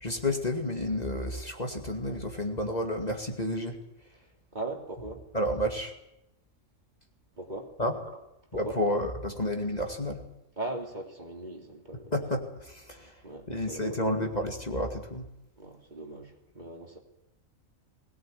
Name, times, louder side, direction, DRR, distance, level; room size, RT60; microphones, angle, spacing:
voice 1, 0.0-3.8 5.3-5.9 7.8-7.9 8.5-10.2 12.1-13.1 13.5-15.3, left 1 dB, 30° left, 2.4 m, -30 dB
voice 2, 4.5-5.2 7.4-7.7 8.5-8.8 10.6-12.1 13.0-14.0 15.6-17.0, right 2 dB, 35° right, 3.1 m, -39 dB
21.5 x 19.0 x 9.4 m
omnidirectional pair, 1.4 m